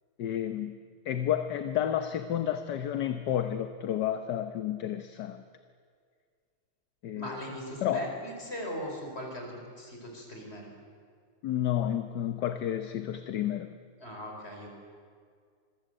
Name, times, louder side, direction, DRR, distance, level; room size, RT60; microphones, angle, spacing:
voice 1, 0.2-0.8 1.0-5.4 7.0-7.4 7.8-8.0 11.4-13.7, left 10 dB, 60° left, 8 dB, 1.3 m, -31 dB
voice 2, 7.1-10.7 14.0-14.7, equal, 25° left, 1 dB, 5.2 m, -39 dB
26.5 x 22.0 x 8.0 m, 2.1 s
omnidirectional pair, 2.4 m